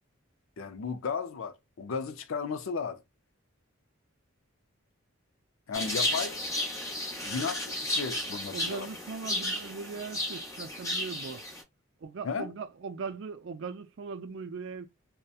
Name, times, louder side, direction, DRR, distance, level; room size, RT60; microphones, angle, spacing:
voice 1, 0.6-3.0 5.7-6.4 7.2-8.9 12.2-12.5, left 5 dB, 70° left, 0.4 m, -34 dB
sound 1, 5.7-11.6, left 1 dB, 15° left, 0.7 m, -33 dB
voice 2, 8.5-11.4 12.0-14.9, right 5 dB, 55° right, 0.4 m, -39 dB
2.7 x 2.1 x 2.3 m
head